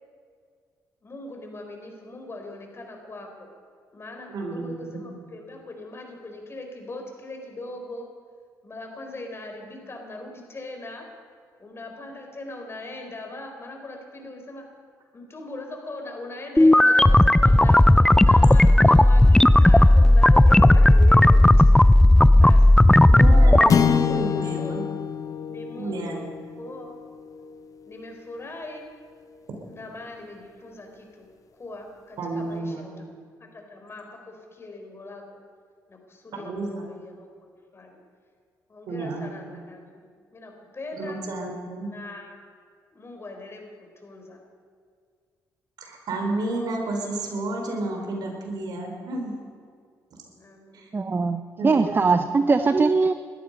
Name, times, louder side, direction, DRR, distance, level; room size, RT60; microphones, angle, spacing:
voice 1, 1.0-3.5 3.9-8.1 8.6-11.0 11.6-14.6 15.1-21.4 22.3-22.7 23.0-23.8 24.1-25.0 25.5-26.3 26.6-27.0 27.8-28.9 29.7-33.1 33.4-35.2 35.9-37.3 37.7-38.0 38.7-41.2 41.8-42.3 42.9-43.6 44.0-44.4 50.3-50.9, left 2 dB, 35° left, 3 dB, 4.2 m, -40 dB
voice 2, 4.3-5.0 23.1-24.8 25.7-26.3 32.2-32.9 36.3-36.8 38.9-39.3 40.9-41.9 45.8-49.4 50.7-50.9 51.6-52.2, right 2 dB, 70° right, 1 dB, 4.2 m, -31 dB
sound 1, 16.6-23.7, left 1 dB, 10° left, 0.5 m, -14 dB
sound 2, 23.7-28.2, left 7 dB, 50° left, 0.7 m, -27 dB
voice 3, 50.9-53.1, right 4 dB, 30° right, 11 dB, 0.7 m, -21 dB
20.5 x 13.0 x 5.3 m, 2.1 s
cardioid pair, 70°, 7 cm